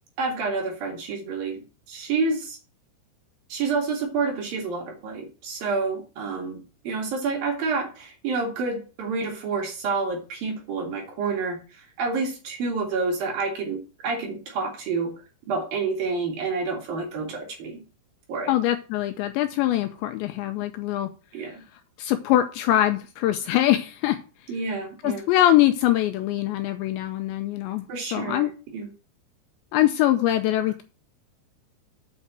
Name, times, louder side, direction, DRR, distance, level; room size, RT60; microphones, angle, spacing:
voice 1, 0.2-2.6 3.5-15.1 15.5-17.8 18.3-18.5 21.3-21.6 24.5-25.2 27.9-28.9, right 4 dB, 55° right, 1 dB, 3.2 m, -29 dB
voice 2, 18.5-21.1 22.0-24.2 25.0-27.8 28.1-28.5 29.7-30.8, left 13 dB, 80° left, 8 dB, 2.7 m, -23 dB
7.4 x 5.5 x 7.3 m, 0.34 s
omnidirectional pair, 5.6 m